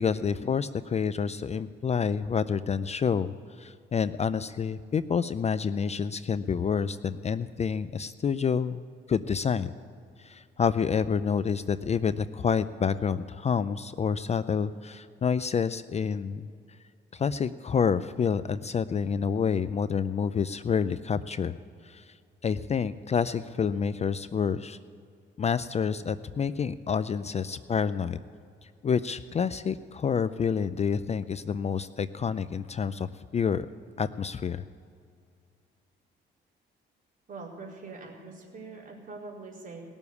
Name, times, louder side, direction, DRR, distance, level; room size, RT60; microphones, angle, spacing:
voice 1, 0.0-8.8 9.1-9.7 10.2-16.4 17.1-21.6 21.8-22.0 22.4-24.8 25.4-28.2 28.8-33.7 34.0-34.6, left 6 dB, 35° left, 14 dB, 0.4 m, -28 dB
voice 2, 37.3-39.8, right 3 dB, 45° right, -2 dB, 4.4 m, -43 dB
19.5 x 7.1 x 8.3 m, 2.4 s
cardioid pair, 90°, 20 cm